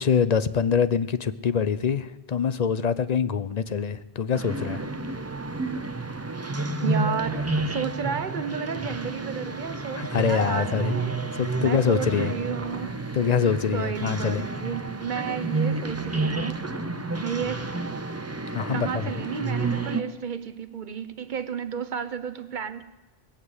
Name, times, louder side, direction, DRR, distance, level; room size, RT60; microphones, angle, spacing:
voice 1, 0.0-4.8 10.0-10.9 11.3-12.3 13.1-14.5 18.5-19.0, left 6 dB, 50° left, 0.6 m, -24 dB
sound 1, 4.3-20.0, right 3 dB, 15° right, 0.6 m, -30 dB
voice 2, 6.8-11.2 11.6-13.0 13.7-16.6 17.2-17.9 18.7-22.8, right 7 dB, 50° right, 0.9 m, -32 dB
21.0 x 7.5 x 8.1 m
omnidirectional pair, 1.1 m